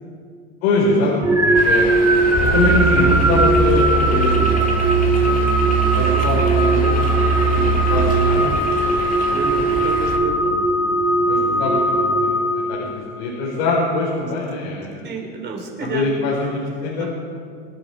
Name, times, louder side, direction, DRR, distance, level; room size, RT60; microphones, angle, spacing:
voice 1, 0.6-2.0 2.4-4.8 5.9-7.2 7.5-9.1 11.2-11.9 12.2-15.1 15.8-17.0, left 3 dB, 75° left, -5 dB, 4.8 m, -23 dB
sound 1, 1.2-13.2, right 2 dB, 5° right, 1.2 m, -19 dB
sound 2, 1.5-10.2, left 3 dB, 25° left, 2.8 m, -29 dB
Musical instrument, 2.3-8.7, right 6 dB, 90° right, 1.1 m, -21 dB
voice 2, 5.0-5.4 9.3-10.6 15.0-16.1 17.0-17.1, right 4 dB, 30° right, 1 dB, 4.1 m, -30 dB
25.5 x 11.0 x 4.7 m, 2.2 s
supercardioid pair, 115°, 34 cm